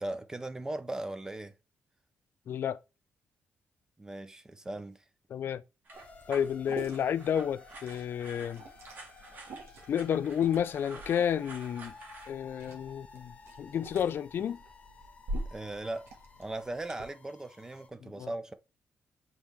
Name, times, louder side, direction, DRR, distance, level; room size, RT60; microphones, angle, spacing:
voice 1, 0.0-1.5 4.0-5.0 15.5-16.1 16.4-18.5, right 2 dB, 15° right, 0.5 m, -38 dB
voice 2, 2.5-2.8 5.3-5.6 6.3-8.6 9.9-11.9 12.3-14.6 18.2-18.3, left 9 dB, 55° left, 0.4 m, -31 dB
sound 1, 5.8-12.3, right 3 dB, 45° right, 2.2 m, -50 dB
sound 2, 5.9-17.9, left 4 dB, 30° left, 0.9 m, -54 dB
Liquid, 5.9-17.0, right 1 dB, 70° right, 1.9 m, -46 dB
7.4 x 4.1 x 3.4 m
wide cardioid pair, 160°, 4 cm